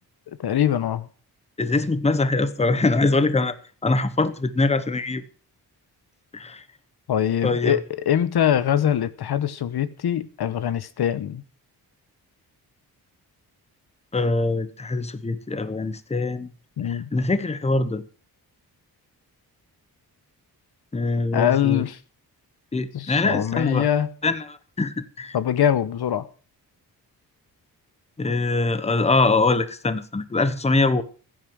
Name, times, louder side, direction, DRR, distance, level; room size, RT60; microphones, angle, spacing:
voice 1, 0.4-1.1 7.1-11.4 16.8-17.1 21.3-22.0 22.9-24.1 25.3-26.2, left 10 dB, 75° left, 1.1 m, -23 dB
voice 2, 1.6-3.5 3.8-5.2 6.3-6.6 7.4-7.8 14.1-16.5 16.8-18.0 20.9-21.8 22.7-23.9 24.2-25.4 28.2-31.0, left 3 dB, 15° left, 1.0 m, -23 dB
15.5 x 9.3 x 6.2 m
wide cardioid pair, 145°, 38 cm